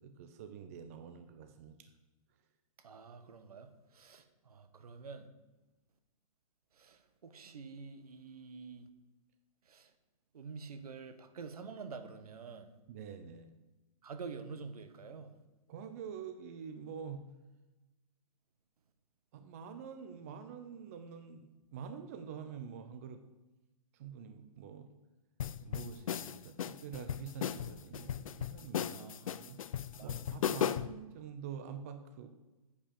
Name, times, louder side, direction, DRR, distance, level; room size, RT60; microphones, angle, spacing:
voice 1, 0.0-1.8 12.9-13.5 15.7-17.2 19.3-23.2 23.9-24.9 25.6-32.3, right 7 dB, 25° right, 8 dB, 0.5 m, -46 dB
voice 2, 2.8-5.3 6.8-8.9 9.7-9.9 10.3-12.7 14.0-15.3 28.9-29.3 29.9-30.7, right 5 dB, 75° right, 9 dB, 1.3 m, -48 dB
sound 1, 25.4-31.0, left 9 dB, 65° left, 0.5 m, -36 dB
8.7 x 5.2 x 6.9 m, 1.1 s
hypercardioid pair, 170°, 19 cm